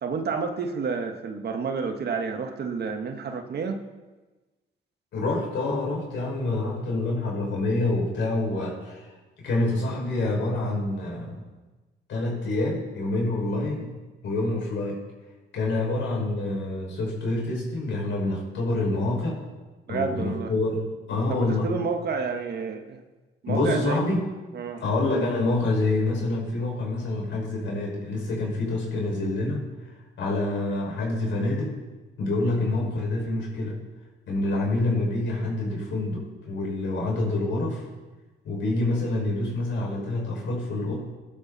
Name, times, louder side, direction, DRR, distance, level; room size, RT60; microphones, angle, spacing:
voice 1, 0.0-3.8 19.9-20.5 21.3-23.0 23.4-24.0 24.5-24.8, right 5 dB, 55° right, 5 dB, 1.4 m, -30 dB
voice 2, 5.1-9.1 9.4-11.4 12.1-13.9 14.2-15.0 15.5-19.4 19.9-21.7 23.5-24.3 24.8-29.9 30.2-31.8 32.2-33.8 34.3-37.9 38.4-40.9, left 2 dB, 70° left, -2 dB, 5.6 m, -27 dB
17.5 x 11.5 x 4.1 m, 1.2 s
cardioid pair, 90°, 20 cm